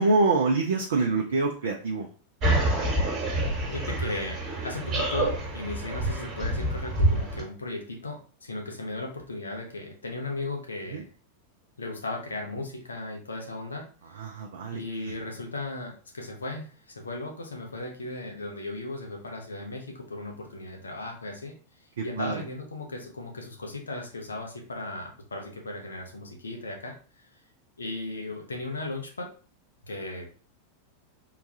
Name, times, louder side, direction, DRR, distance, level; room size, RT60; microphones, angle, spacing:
voice 1, 0.0-2.1 10.9-11.0 14.2-15.1 22.2-22.3, right 3 dB, 60° right, 2 dB, 0.4 m, -25 dB
sound 1, 2.4-7.4, right 1 dB, 35° right, 1.2 m, -27 dB
voice 2, 3.7-4.4 4.6-11.0 11.8-13.8 14.7-21.5 22.0-27.3 27.8-29.3 29.8-30.3, left 2 dB, 75° left, 1 dB, 0.9 m, -36 dB
3.8 x 2.3 x 2.7 m, 0.39 s
figure-of-eight pair, 90°, 0 cm